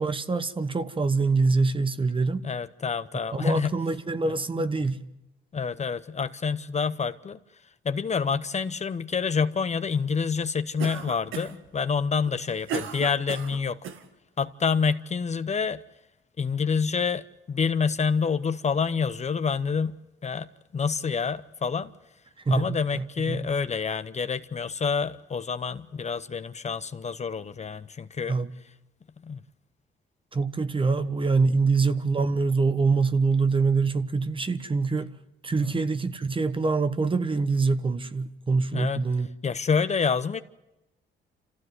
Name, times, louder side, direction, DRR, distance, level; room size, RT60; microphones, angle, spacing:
voice 1, 0.0-2.4 3.3-5.1 22.5-23.4 28.3-28.5 30.3-35.1 35.4-39.3, right 4 dB, 25° right, 1.2 m, -25 dB
voice 2, 2.4-3.7 4.2-4.7 5.5-7.4 7.8-13.8 14.4-15.8 16.4-19.9 20.2-20.5 20.7-21.9 22.5-28.4 29.2-29.4 35.6-35.8 38.7-39.0 39.4-40.4, left 5 dB, 35° left, 0.8 m, -27 dB
Cough, 10.8-11.7 12.3-14.0, right 7 dB, 90° right, 1.7 m, -35 dB
27.5 x 15.0 x 9.5 m
cardioid pair, 90°, 20 cm